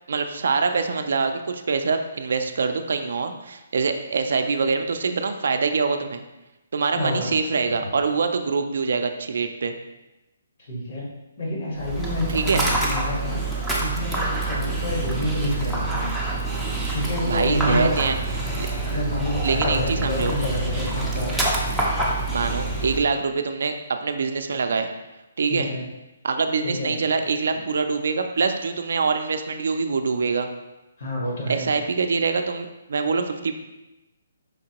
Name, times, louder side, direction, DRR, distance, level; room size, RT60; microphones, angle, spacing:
voice 1, 0.1-6.2 6.7-9.7 12.3-12.6 17.3-18.2 18.6-18.7 19.4-20.3 22.3-24.9 25.4-25.7 26.2-30.5 31.5-33.5, right 4 dB, 65° right, 6 dB, 0.3 m, -24 dB
voice 2, 7.0-7.3 10.7-11.1 11.4-13.4 13.8-16.1 16.9-17.9 18.8-21.4 25.5-25.9 26.6-27.0 31.0-31.7, left 1 dB, 50° left, -4 dB, 1.2 m, -28 dB
Dog, 11.8-23.0, right 2 dB, ahead, 0.4 m, -26 dB
5.2 x 2.8 x 2.9 m, 1.0 s
hypercardioid pair, 165°, 0 cm